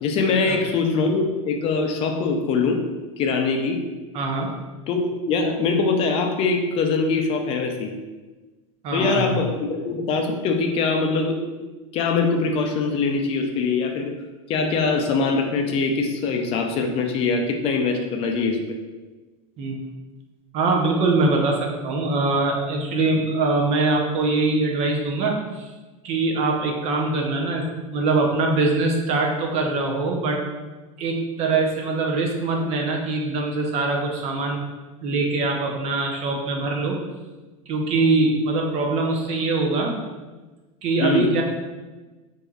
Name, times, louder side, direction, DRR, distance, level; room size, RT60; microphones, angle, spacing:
voice 1, 0.0-2.8 3.2-3.8 4.9-7.9 8.9-11.7 11.9-14.1 14.5-18.6 41.0-41.3, left 4 dB, 35° left, 4 dB, 0.4 m, -23 dB
voice 2, 4.1-4.5 8.8-9.4 19.6-19.9 20.5-25.7 26.0-30.4 31.0-34.6 35.0-37.0 37.7-40.0 40.8-41.4, right 3 dB, 35° right, 1 dB, 0.6 m, -23 dB
4.3 x 2.6 x 2.4 m, 1.2 s
supercardioid pair, 145°, 18 cm